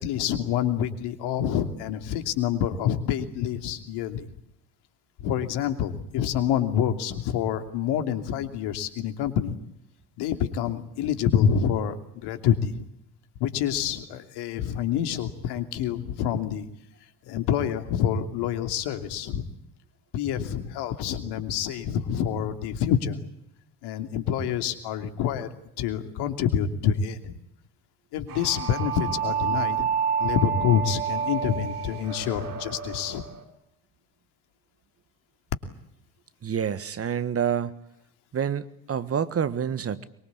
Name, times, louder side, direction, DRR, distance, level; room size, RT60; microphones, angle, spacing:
voice 1, 0.0-4.3 5.2-9.5 10.2-12.9 13.4-16.7 17.3-19.5 20.1-23.2 23.8-25.5 25.8-27.4 28.1-29.9 30.2-33.3, left 9 dB, 60° left, 8 dB, 3.0 m, -27 dB
sound 1, 28.3-33.4, right 7 dB, 85° right, 3.6 m, -29 dB
voice 2, 36.4-37.8 38.3-40.1, right 8 dB, 30° right, 15 dB, 1.6 m, -27 dB
24.0 x 23.5 x 8.4 m, 0.78 s
hypercardioid pair, 70°, 44 cm